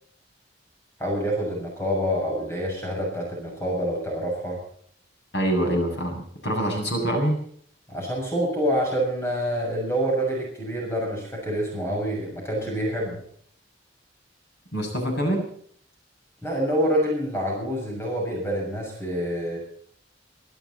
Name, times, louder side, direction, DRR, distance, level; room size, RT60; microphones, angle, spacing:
voice 1, 1.0-4.6 7.9-13.2 16.4-19.6, equal, 15° left, -1 dB, 6.8 m, -27 dB
voice 2, 5.3-7.4 14.7-15.5, right 1 dB, 65° left, 3 dB, 7.5 m, -25 dB
24.5 x 13.0 x 4.2 m, 0.62 s
head